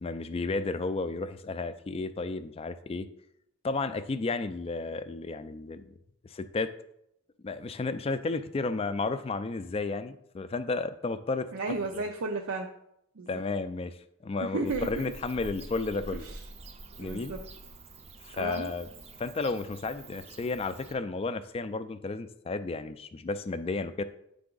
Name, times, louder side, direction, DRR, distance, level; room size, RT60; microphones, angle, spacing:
voice 1, 0.0-3.1 3.6-5.9 6.2-6.7 7.4-11.5 11.9-12.0 13.3-16.2 17.0-17.4 18.2-18.9 19.2-24.0, left 3 dB, 30° left, 12 dB, 0.3 m, -33 dB
voice 2, 11.5-12.7 13.2-13.4 14.4-15.1 16.2-16.4 17.0-17.4 18.3-18.7, right 3 dB, 85° right, 2 dB, 0.6 m, -34 dB
Bird / Cricket, 14.7-20.9, right 2 dB, 30° right, 0.5 m, -46 dB
9.5 x 3.5 x 3.8 m, 0.78 s
head